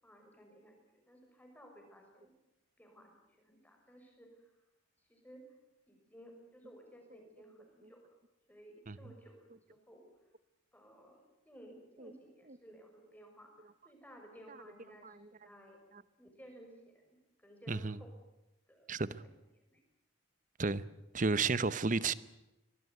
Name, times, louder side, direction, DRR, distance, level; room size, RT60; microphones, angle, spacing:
voice 1, 0.0-2.3 2.8-4.5 5.0-5.5 5.9-8.2 8.5-9.4 9.7-10.1 10.7-13.5 13.8-15.8 16.2-18.1 18.7-18.9 19.7-19.8, equal, 10° left, 5.7 m, -57 dB
voice 2, 17.7-18.0 18.9-19.2 20.6-20.8 21.1-22.1, right 4 dB, 40° right, 0.8 m, -33 dB
23.5 x 19.0 x 9.4 m
head